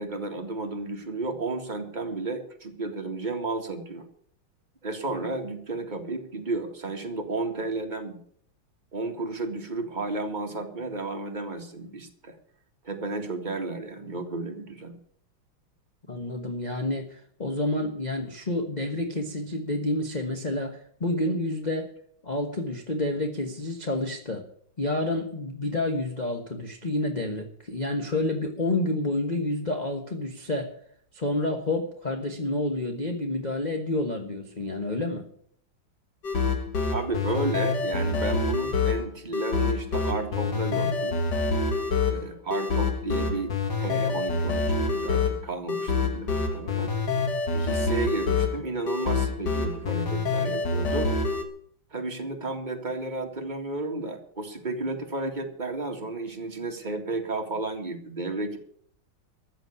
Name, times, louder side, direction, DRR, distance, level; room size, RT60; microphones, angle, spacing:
voice 1, 0.0-4.1 4.8-8.2 8.9-12.4 12.8-15.0 36.9-41.2 42.1-43.5 43.8-46.9 47.5-51.1 51.9-58.6, right 2 dB, 20° right, 3 dB, 2.1 m, -32 dB
voice 2, 16.1-21.9 22.2-24.4 24.8-30.7 31.1-35.2, left 2 dB, 25° left, 3 dB, 1.3 m, -29 dB
sound 1, 36.2-51.4, left 4 dB, 55° left, 2.2 m, -27 dB
14.0 x 7.6 x 9.9 m, 0.63 s
omnidirectional pair, 2.3 m